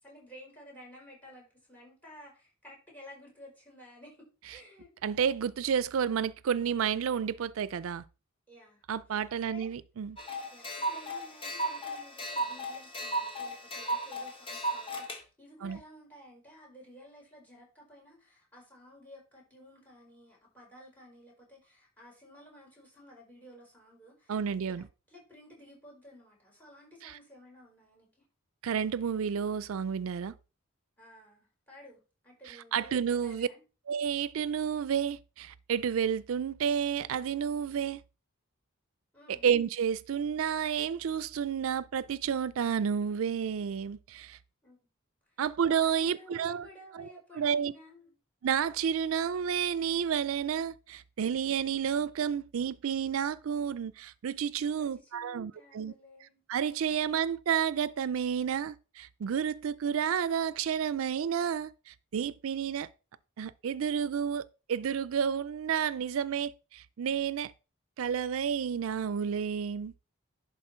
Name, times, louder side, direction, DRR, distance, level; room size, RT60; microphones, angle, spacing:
voice 1, 0.0-4.9 8.5-8.9 9.4-9.7 10.5-24.7 25.1-28.1 31.0-33.6 39.1-39.5 44.6-44.8 45.3-45.4 45.8-48.1 54.8-56.4, left 1 dB, 10° left, 4.8 m, -54 dB
voice 2, 5.0-8.0 8.9-10.2 15.6-15.8 24.3-24.8 27.0-27.1 28.6-30.3 32.5-33.5 33.9-38.0 39.3-44.4 45.4-46.7 46.9-47.7 48.4-55.9 56.5-62.9 63.4-64.4 64.7-67.5 68.0-69.9, right 7 dB, 80° right, 0.4 m, -31 dB
sound 1, 10.2-15.2, right 1 dB, 25° left, 1.3 m, -35 dB
11.0 x 4.2 x 4.4 m
head